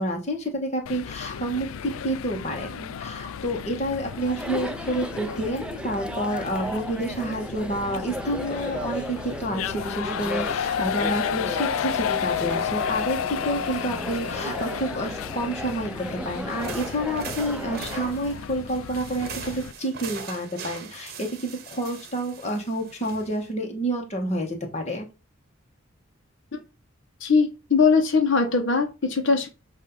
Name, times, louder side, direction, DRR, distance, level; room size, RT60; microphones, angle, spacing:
voice 1, 0.0-15.9 16.2-25.1, right 1 dB, 30° left, 1 dB, 1.4 m, -29 dB
sound 1, 0.9-19.7, left 8 dB, 85° left, 0.4 m, -32 dB
Chatter, 4.1-18.2, right 1 dB, 5° right, 0.3 m, -36 dB
sound 2, 16.5-23.5, right 5 dB, 50° right, 1.1 m, -40 dB
voice 2, 27.2-29.5, left 4 dB, 65° left, 4 dB, 1.1 m, -21 dB
8.3 x 2.8 x 5.4 m, 0.29 s
head